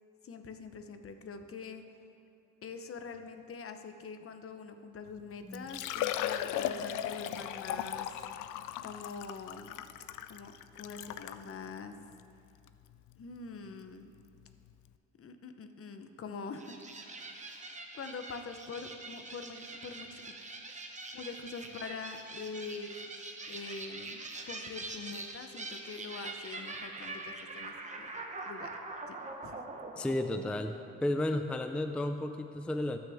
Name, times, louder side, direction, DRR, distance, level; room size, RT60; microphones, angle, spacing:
voice 1, 0.2-1.8 2.6-8.1 8.8-9.9 10.2-11.9 13.2-14.1 15.2-16.8 17.3-20.3 21.1-23.0 23.5-28.1 28.5-28.7 29.1-29.2 29.4-29.6, left 4 dB, 45° left, 7 dB, 0.9 m, -44 dB
Liquid, 5.1-5.2 5.5-11.4 12.1-12.2 12.7-12.8 14.4-14.5 14.7-14.8, left 11 dB, 85° left, 0.5 m, -37 dB
sound 1, 16.6-31.2, right 2 dB, 25° right, 1.1 m, -44 dB
voice 2, 30.0-30.8 31.0-33.0, left 1 dB, 5° left, 7 dB, 0.4 m, -33 dB
18.5 x 6.3 x 3.5 m, 2.5 s
cardioid pair, 90°, 30 cm